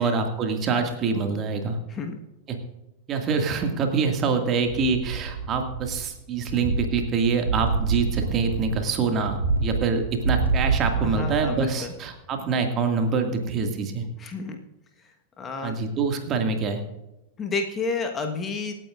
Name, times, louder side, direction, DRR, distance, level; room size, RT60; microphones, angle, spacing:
voice 1, 0.0-1.8 2.5-2.6 3.1-14.1 15.6-16.8, right 5 dB, 30° right, 4 dB, 2.0 m, -25 dB
voice 2, 1.9-2.2 11.0-11.9 14.2-14.6 15.4-15.8 17.4-18.8, left 4 dB, 20° left, 5 dB, 1.3 m, -30 dB
sound 1, 4.7-6.1 6.4-11.7 12.0-12.1, right 4 dB, 75° right, 3.7 m, -27 dB
26.0 x 9.2 x 2.5 m, 0.99 s
figure-of-eight pair, 90°, 0 cm